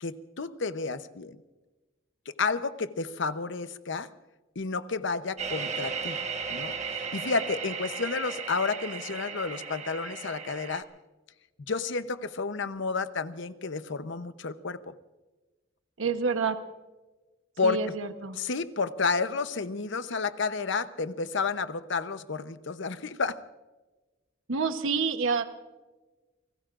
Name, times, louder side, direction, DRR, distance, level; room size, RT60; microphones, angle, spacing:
voice 1, 0.0-1.4 2.4-4.1 4.6-6.2 6.5-10.9 11.7-14.9 17.6-17.8 18.4-23.4, left 4 dB, 65° left, 12 dB, 0.8 m, -31 dB
sound 1, 5.4-10.8, right 5 dB, 35° right, 1.4 m, -35 dB
voice 2, 16.0-16.6 17.6-18.4 24.5-25.4, right 5 dB, 90° right, 8 dB, 1.0 m, -28 dB
29.5 x 19.5 x 2.5 m, 1.2 s
head